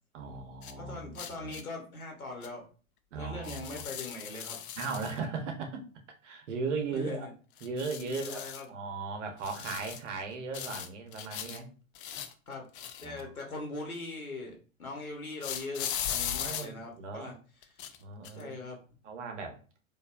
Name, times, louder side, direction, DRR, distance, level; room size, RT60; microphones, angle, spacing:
voice 1, 0.1-1.6 3.1-3.8 4.8-5.8 6.2-7.3 7.6-11.7 13.0-13.3 16.3-17.3 18.0-18.6 19.0-19.6, right 4 dB, 60° right, 4 dB, 1.1 m, -37 dB
sound 1, 0.6-0.7 1.2-1.6 2.4-2.5 3.4-5.2 7.6-8.7 9.4-10.1 10.5-11.6 12.0-13.4 15.4-16.7 17.6-18.0 18.2-18.4, left 9 dB, 40° left, 0.5 m, -38 dB
voice 2, 0.8-2.6 3.1-4.6 6.9-7.3 8.0-8.7 12.5-12.7 13.0-17.4 17.6-17.7 18.4-18.8, left 2 dB, 85° left, 2 dB, 1.2 m, -41 dB
4.4 x 2.8 x 2.5 m, 0.37 s
figure-of-eight pair, 105°, 41 cm